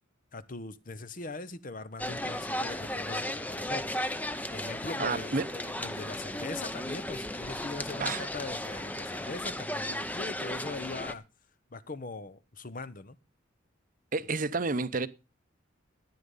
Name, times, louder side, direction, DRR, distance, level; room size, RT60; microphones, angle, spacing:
voice 1, 0.3-3.9 4.5-11.2 11.7-13.2, left 3 dB, 45° left, 0.9 m, -41 dB
sound 1, 2.0-11.1, left 1 dB, 10° left, 0.7 m, -35 dB
voice 2, 5.0-5.5 8.0-8.2 14.1-15.1, right 3 dB, 45° right, 0.8 m, -30 dB
13.0 x 9.8 x 5.5 m
head